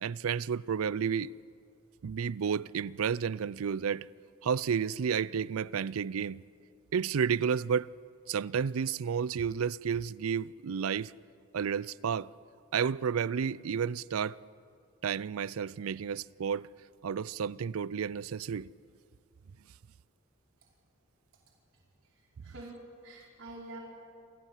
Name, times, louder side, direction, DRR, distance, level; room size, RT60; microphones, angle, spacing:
voice 1, 0.0-1.3 2.0-4.1 4.4-6.4 6.9-7.9 8.3-11.1 11.5-12.3 12.7-14.4 15.0-16.7 17.0-18.7, right 7 dB, 85° right, 0.4 m, -31 dB
voice 2, 22.1-22.8 23.0-23.8, right 2 dB, 60° right, 5.2 m, -47 dB
27.5 x 16.5 x 7.4 m
head